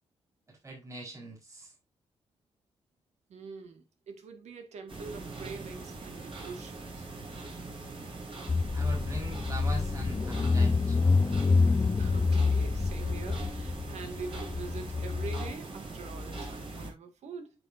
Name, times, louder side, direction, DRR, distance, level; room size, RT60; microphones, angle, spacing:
voice 1, 0.5-1.7 8.7-11.0, right 2 dB, 30° right, 4.7 m, -42 dB
voice 2, 3.3-7.1 11.9-17.5, right 5 dB, 90° right, 2.1 m, -44 dB
sound 1, 4.9-16.9, right 3 dB, 50° right, 5.0 m, -42 dB
Car / Engine, 8.5-15.5, left 4 dB, 25° left, 0.6 m, -27 dB
9.4 x 6.3 x 2.8 m
cardioid pair, 105°, 11 cm